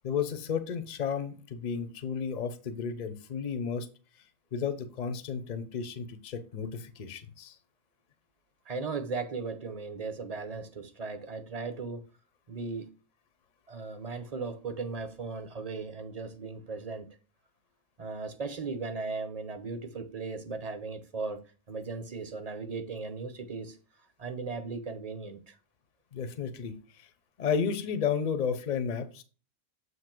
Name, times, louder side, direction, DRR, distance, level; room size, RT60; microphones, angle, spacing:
voice 1, 0.0-3.9 4.5-7.6 26.1-27.1 27.4-29.2, left 6 dB, 40° left, 0.7 m, -33 dB
voice 2, 8.7-12.1 12.5-12.9 13.7-17.1 18.0-21.4 21.7-23.8 24.2-25.6, right 4 dB, 35° right, 0.8 m, -37 dB
7.9 x 2.8 x 5.9 m
omnidirectional pair, 1.4 m